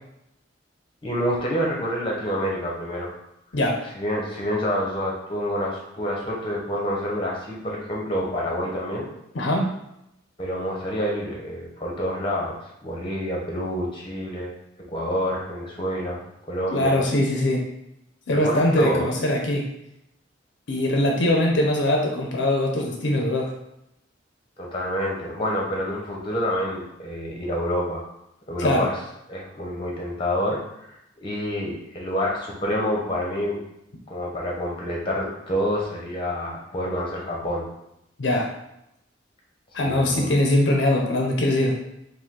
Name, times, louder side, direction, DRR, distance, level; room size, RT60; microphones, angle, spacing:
voice 1, 1.0-3.1 3.9-9.1 10.4-14.5 14.9-17.0 18.4-19.1 24.6-28.1 28.5-29.0 29.3-33.6 34.1-37.7 39.8-40.3, equal, 30° left, -2 dB, 0.9 m, -28 dB
voice 2, 9.3-9.7 16.7-17.6 18.3-19.6 20.7-23.5 28.6-28.9 38.2-38.5 39.7-41.8, left 1 dB, 75° left, 1 dB, 0.6 m, -22 dB
5.0 x 2.2 x 3.7 m, 0.82 s
head